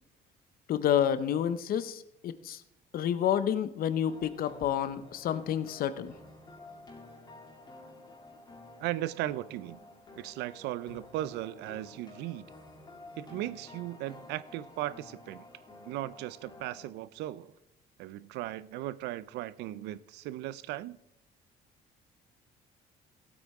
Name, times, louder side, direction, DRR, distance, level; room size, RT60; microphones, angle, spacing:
voice 1, 0.7-2.6 2.9-6.1, left 9 dB, 60° left, 0.8 m, -29 dB
sound 1, 4.1-16.9, left 2 dB, 25° left, 2.5 m, -51 dB
voice 2, 8.8-9.8 10.2-12.5 13.2-15.5 15.9-17.5 18.0-21.0, right 14 dB, 85° right, 0.5 m, -37 dB
16.0 x 8.7 x 3.6 m
cardioid pair, 110°, 17 cm